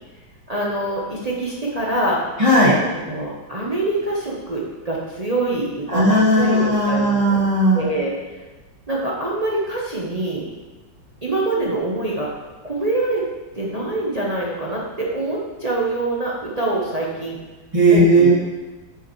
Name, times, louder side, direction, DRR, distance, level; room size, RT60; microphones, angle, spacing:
voice 1, 0.5-2.2 3.0-7.4 7.7-8.1 8.9-10.4 11.2-12.3 12.6-13.2 13.5-17.4 17.9-18.3, right 2 dB, 35° right, -4 dB, 0.6 m, -25 dB
voice 2, 2.4-2.8 5.9-7.9 17.7-18.3, right 1 dB, 20° right, -8 dB, 1.7 m, -16 dB
8.6 x 6.2 x 3.1 m, 1.2 s
omnidirectional pair, 2.1 m